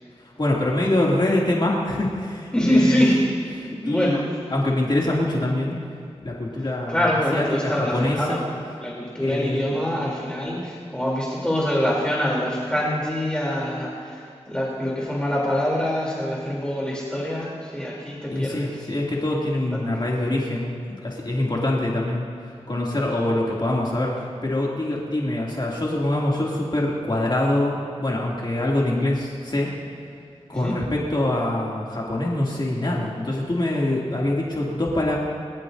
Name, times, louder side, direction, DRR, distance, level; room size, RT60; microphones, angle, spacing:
voice 1, 0.2-3.0 3.5-5.8 6.2-7.0 7.3-8.4 9.2-9.7 18.3-20.7 21.0-22.3 22.7-29.7 30.5-35.2, left 1 dB, 40° left, -4 dB, 2.5 m, -24 dB
voice 2, 2.5-3.3 3.8-4.2 6.9-18.7 30.5-30.8, equal, 10° left, -5 dB, 3.2 m, -24 dB
23.5 x 13.5 x 2.7 m, 2.6 s
wide cardioid pair, 55°, 11 cm